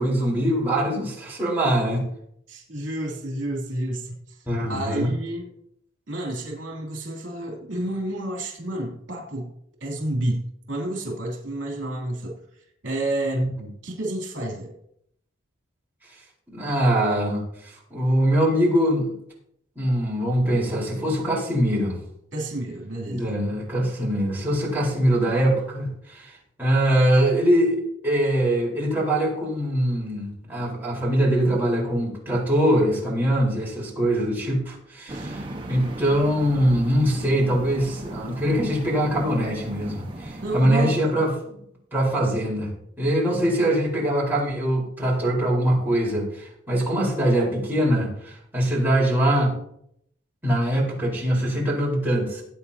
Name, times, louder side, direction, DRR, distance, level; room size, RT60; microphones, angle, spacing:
voice 1, 0.0-2.0 4.5-5.1 13.3-13.5 16.5-19.1 19.8-22.0 23.1-26.3 26.6-41.6 41.9-42.7 43.0-49.5 50.4-52.4, right 1 dB, 10° right, -5 dB, 4.3 m, -23 dB
voice 2, 2.5-5.5 6.1-9.5 9.8-10.4 10.7-12.4 12.8-13.5 13.8-14.7 22.3-23.3 35.1-35.3 40.4-41.0, right 1 dB, 65° right, -1 dB, 3.1 m, -30 dB
sound 1, 35.1-40.6, right 1 dB, 25° right, 1.3 m, -36 dB
19.0 x 8.8 x 2.8 m, 0.74 s
head